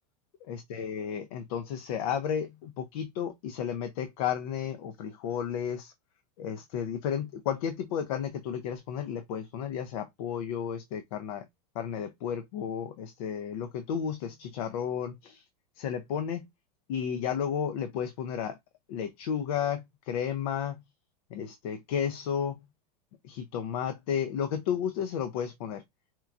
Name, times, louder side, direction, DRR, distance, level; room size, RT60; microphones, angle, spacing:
voice 1, 0.5-5.9 6.4-11.5 11.7-15.4 15.8-16.5 16.9-18.6 18.9-20.8 21.3-22.6 23.2-25.8, left 8 dB, 65° left, 0.6 m, -33 dB
4.4 x 2.3 x 2.4 m
supercardioid pair, 125°, 20 cm